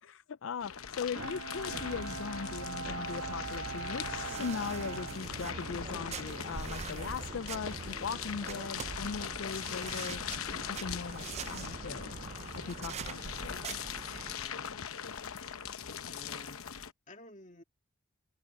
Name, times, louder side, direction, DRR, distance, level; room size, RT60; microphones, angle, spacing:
voice 1, 0.0-10.2 10.5-12.2 12.5-13.7, left 6 dB, 65° left, 0.4 m, -39 dB
sound 1, 0.6-16.9, left 8 dB, 80° left, 0.9 m, -41 dB
Bowed string instrument, 1.1-6.0, right 4 dB, 85° right, 2.1 m, -42 dB
sound 2, 1.7-14.3, right 5 dB, 30° right, 0.4 m, -43 dB
voice 2, 14.2-14.8 15.8-16.6 17.1-17.6, left 1 dB, 35° left, 2.4 m, -53 dB
head